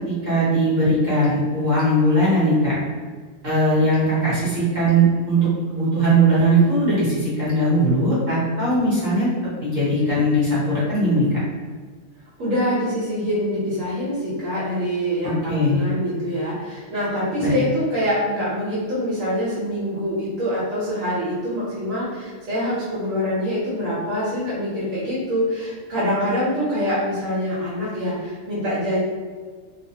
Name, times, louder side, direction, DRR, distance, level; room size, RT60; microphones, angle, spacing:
voice 1, 0.0-2.7 3.4-9.3 9.6-11.4 15.2-15.8 17.4-17.6, right 1 dB, 40° right, -11 dB, 1.0 m, -19 dB
voice 2, 12.4-29.0, equal, 80° right, -10 dB, 1.2 m, -25 dB
2.6 x 2.1 x 2.7 m, 1.5 s
omnidirectional pair, 1.3 m